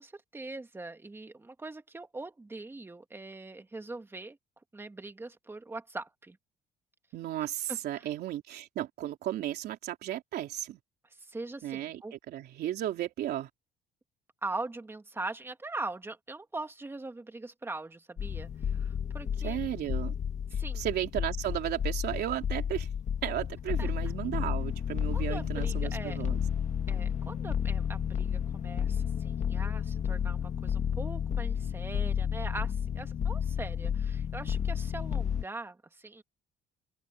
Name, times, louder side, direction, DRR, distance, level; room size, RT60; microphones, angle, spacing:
voice 1, 0.0-4.4 4.7-6.4 7.4-8.1 11.2-12.2 14.4-19.6 20.6-20.8 23.8-23.9 25.1-26.2 26.9-36.2, right 2 dB, 15° right, 2.0 m, -41 dB
voice 2, 7.1-10.8 11.6-13.5 19.4-20.2 20.5-22.9 23.2-26.4, right 12 dB, 70° right, 3.3 m, -34 dB
sound 1, 18.2-35.4, left 8 dB, 45° left, 1.7 m, -32 dB
cardioid pair, 135°, 17 cm